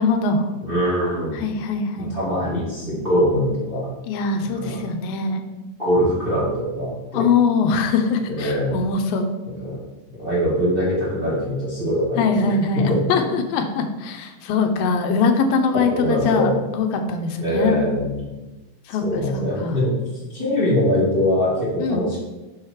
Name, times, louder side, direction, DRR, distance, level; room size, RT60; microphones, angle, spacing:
voice 1, 0.0-0.5 1.3-2.4 4.1-5.4 7.1-9.3 12.2-17.8 18.9-19.8 21.8-22.1, left 4 dB, 85° left, 5 dB, 2.4 m, -22 dB
voice 2, 0.6-1.4 2.0-3.9 4.4-4.8 5.8-7.3 8.4-8.8 9.6-9.8 10.1-12.3 12.8-13.4 15.9-16.6 17.4-18.2 19.0-19.9 20.3-22.2, equal, 20° right, -9 dB, 1.9 m, -22 dB
6.3 x 4.9 x 4.8 m, 1.1 s
omnidirectional pair, 4.0 m